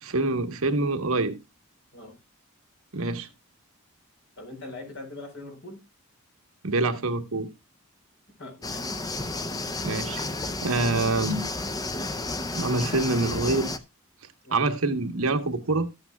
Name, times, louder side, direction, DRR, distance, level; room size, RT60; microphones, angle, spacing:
voice 1, 0.0-1.4 2.9-3.3 6.6-7.5 9.8-10.2 10.6-11.4 12.5-13.7 14.5-15.9, right 2 dB, 75° right, 1.1 m, -25 dB
voice 2, 4.4-5.8 8.4-9.0 14.4-14.7, left 2 dB, 55° left, 4.3 m, -42 dB
sound 1, 8.6-13.8, left 2 dB, 15° left, 0.5 m, -32 dB
14.5 x 8.7 x 2.2 m
head